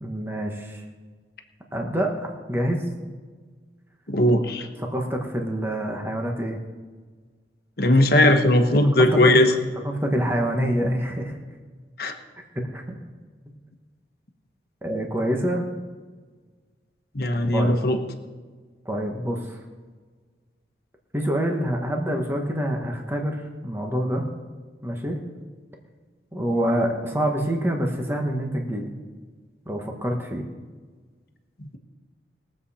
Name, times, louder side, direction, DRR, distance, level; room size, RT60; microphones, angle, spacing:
voice 1, 0.0-0.8 1.7-2.9 4.8-6.6 9.0-9.4 9.8-11.3 12.5-13.0 14.8-15.6 17.5-17.7 18.8-19.6 21.1-24.3 24.8-25.2 26.3-28.9 29.6-30.4, equal, 15° right, 2 dB, 1.3 m, -26 dB
voice 2, 4.1-4.7 7.8-9.5 12.0-12.1 17.1-18.0 31.6-31.8, left 1 dB, 55° left, 5 dB, 1.2 m, -18 dB
21.5 x 7.6 x 4.3 m, 1.4 s
head